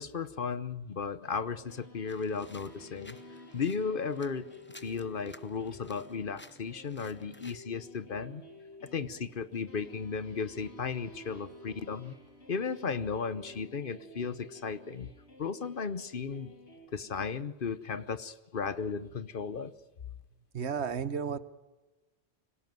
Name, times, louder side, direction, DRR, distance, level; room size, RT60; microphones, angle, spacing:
voice 1, 0.0-3.2 3.5-4.5 4.8-8.4 8.8-12.1 12.5-15.1 15.4-16.5 16.9-19.7, left 5 dB, 55° left, 15 dB, 1.1 m, -35 dB
sound 1, 1.4-16.9, left 1 dB, 75° left, 3.9 m, -53 dB
sound 2, 2.1-7.6, left 2 dB, 10° left, 0.7 m, -55 dB
voice 2, 20.5-21.4, right 6 dB, 75° right, 15 dB, 1.3 m, -32 dB
25.5 x 17.5 x 9.3 m, 1.1 s
omnidirectional pair, 1.1 m